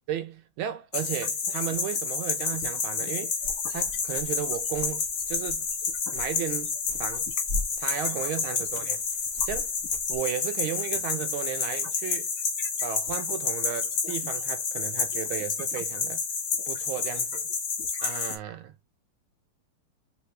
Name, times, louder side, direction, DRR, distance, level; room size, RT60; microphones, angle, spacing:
voice 1, 0.1-3.3 3.7-5.7 6.1-7.3 7.8-9.0 9.4-9.7 10.1-12.3 12.8-16.2 16.7-17.5 18.0-18.8, right 10 dB, 75° right, 1.5 m, -34 dB
sound 1, 0.9-18.4, left 5 dB, 55° left, 1.5 m, -30 dB
sound 2, 3.4-10.2, left 2 dB, 45° right, 1.4 m, -41 dB
3.6 x 3.2 x 3.2 m
omnidirectional pair, 2.3 m